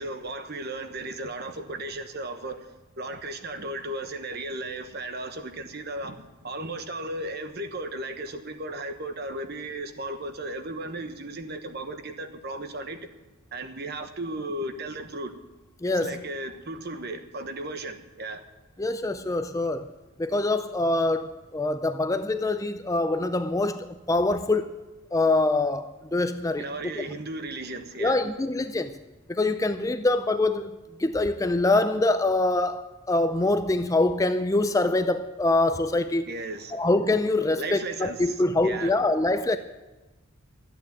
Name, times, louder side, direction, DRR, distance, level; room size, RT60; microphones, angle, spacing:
voice 1, 0.0-2.7 3.0-13.0 13.5-15.3 15.9-18.4 26.6-28.3 36.3-36.9 37.6-39.0, right 2 dB, 45° right, 1.1 m, -35 dB
voice 2, 15.8-16.2 18.8-19.9 20.2-24.8 25.1-26.7 27.0-27.1 28.0-28.9 29.3-36.3 36.7-39.6, left 2 dB, 15° left, 0.4 m, -24 dB
13.0 x 8.9 x 8.6 m
head